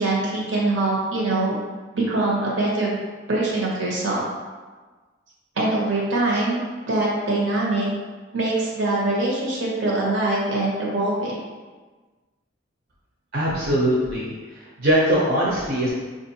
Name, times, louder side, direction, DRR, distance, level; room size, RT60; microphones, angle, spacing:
voice 1, 0.0-1.5 1.9-3.0 3.3-4.2 5.6-6.6 6.8-7.9 8.3-11.4, right 2 dB, 80° right, -4 dB, 1.0 m, -23 dB
voice 2, 13.3-14.3 14.8-15.9, equal, 55° right, -7 dB, 0.7 m, -21 dB
4.8 x 2.5 x 2.8 m, 1.3 s
head